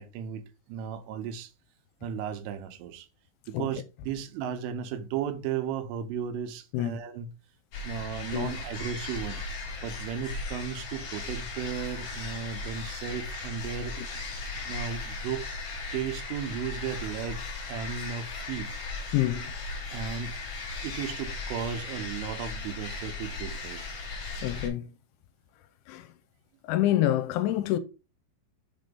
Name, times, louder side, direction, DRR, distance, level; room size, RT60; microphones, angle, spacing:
voice 1, 0.0-1.5 2.0-3.1 3.5-7.3 7.8-9.4 9.8-14.0 14.7-15.5 15.9-18.7 19.9-20.3 20.8-23.9, right 8 dB, 85° right, 3.4 m, -35 dB
sound 1, 7.7-24.7, left 3 dB, 65° left, 1.5 m, -37 dB
voice 2, 19.1-19.5 24.4-24.9 25.9-26.1 26.7-27.8, left 14 dB, 80° left, 3.0 m, -26 dB
7.0 x 4.0 x 5.2 m
omnidirectional pair, 5.6 m